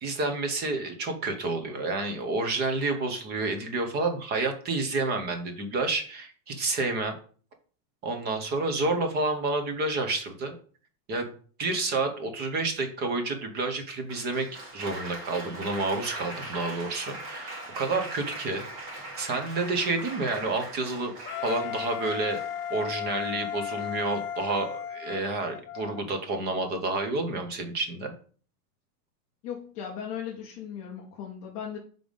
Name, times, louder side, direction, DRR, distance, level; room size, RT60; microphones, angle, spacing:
voice 1, 0.0-7.2 8.0-10.5 11.1-11.3 11.6-14.5 14.7-18.9 19.2-21.1 21.4-22.4 22.7-28.1, right 3 dB, 20° right, 6 dB, 0.9 m, -29 dB
Applause, 14.1-22.9 23.8-24.2, right 2 dB, 40° right, 2.1 m, -41 dB
Wind instrument woodwind instrument, 21.2-26.0, left 10 dB, 85° left, 0.8 m, -35 dB
voice 2, 29.4-31.8, left 8 dB, 20° left, -2 dB, 0.4 m, -37 dB
6.8 x 3.9 x 5.2 m, 0.42 s
supercardioid pair, 180°, 45 cm